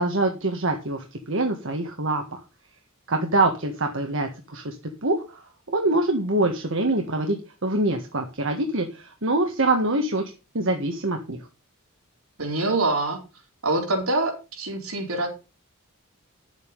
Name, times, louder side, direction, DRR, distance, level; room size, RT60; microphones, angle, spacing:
voice 1, 0.0-2.4 3.1-4.7 5.0-5.4 5.7-10.2 10.5-11.4, right 2 dB, 65° right, 4 dB, 1.7 m, -24 dB
voice 2, 12.4-13.2 13.6-15.3, right 2 dB, 85° right, 2 dB, 4.1 m, -25 dB
10.5 x 8.2 x 5.3 m, 0.30 s
head